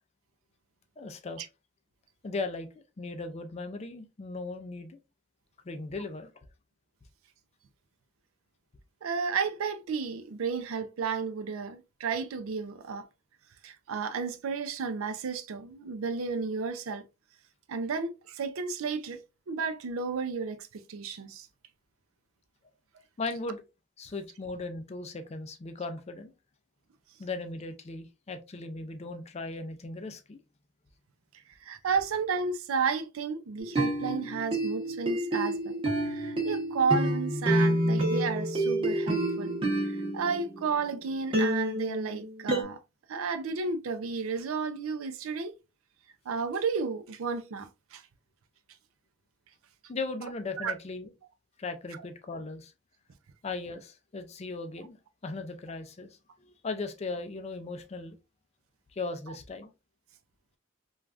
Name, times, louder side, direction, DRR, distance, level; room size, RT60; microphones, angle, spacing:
voice 1, 1.0-1.4 2.2-2.7 3.0-5.0 5.6-6.3 23.2-23.6 24.0-26.3 27.2-30.4 49.9-51.1 51.6-52.7 53.4-55.0 55.2-58.2 58.9-59.7, left 3 dB, 30° left, 0.4 m, -37 dB
voice 2, 9.0-13.0 13.6-17.0 17.7-19.2 19.5-21.5 31.6-35.8 36.1-42.8 43.1-45.5 46.3-48.0 50.6-50.7, right 5 dB, 85° right, 0.4 m, -32 dB
sound 1, 33.6-40.9 41.3-42.6, right 1 dB, 25° right, 0.9 m, -28 dB
3.3 x 2.3 x 2.4 m
head